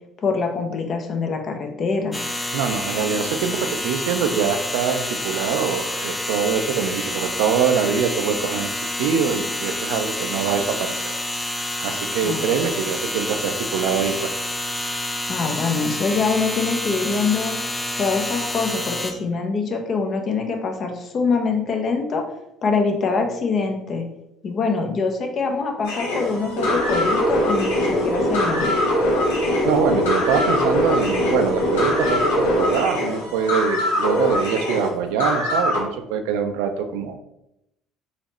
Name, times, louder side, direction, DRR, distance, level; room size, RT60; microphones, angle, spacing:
voice 1, 0.2-2.2 12.2-12.4 15.3-17.6 18.0-22.2 22.6-24.1 24.4-28.9, left 4 dB, 45° left, 4 dB, 0.7 m, -24 dB
sound 1, 2.1-19.1, left 1 dB, 10° left, 0.6 m, -28 dB
voice 2, 2.5-8.7 9.0-11.1 11.8-14.3 29.6-37.2, right 7 dB, 70° right, 7 dB, 0.4 m, -24 dB
sound 2, 25.8-35.8, left 1 dB, 80° left, 0.9 m, -22 dB
4.1 x 2.9 x 3.0 m, 0.84 s
hypercardioid pair, 55°, 0 cm